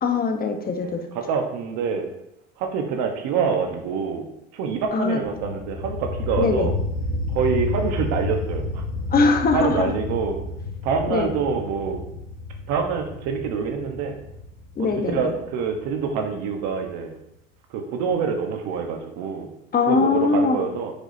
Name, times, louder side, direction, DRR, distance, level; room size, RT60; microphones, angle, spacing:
voice 1, 0.0-1.0 4.9-5.2 6.4-6.7 9.1-10.0 11.1-11.3 14.8-15.3 19.7-20.6, left 4 dB, 30° left, 5 dB, 1.1 m, -21 dB
voice 2, 0.8-2.1 2.6-4.3 4.5-6.7 7.3-8.8 9.5-10.4 10.8-12.0 12.7-14.2 14.8-17.2 17.7-19.5 19.9-20.9, right 6 dB, 65° right, 4 dB, 1.1 m, -26 dB
sound 1, 5.2-16.8, left 3 dB, 55° left, 1.6 m, -31 dB
10.0 x 5.2 x 2.8 m, 0.81 s
supercardioid pair, 105°, 29 cm